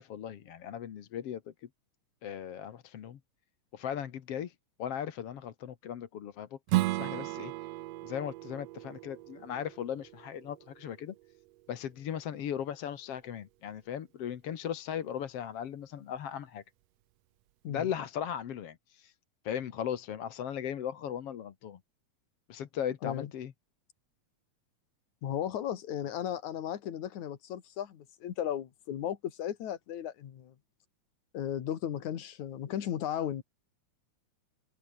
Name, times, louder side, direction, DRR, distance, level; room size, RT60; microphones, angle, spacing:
voice 1, 0.0-1.7 2.2-3.2 3.7-4.5 4.8-6.6 6.9-7.5 8.0-11.1 11.7-16.6 17.7-19.1 19.4-21.8 22.5-23.5, left 9 dB, 55° left, 2.3 m, -37 dB
Strum, 6.7-11.9, right 18 dB, 85° right, 1.5 m, -35 dB
voice 2, 25.2-30.5 31.3-33.4, left 10 dB, 75° left, 3.2 m, -35 dB
omnidirectional pair, 3.4 m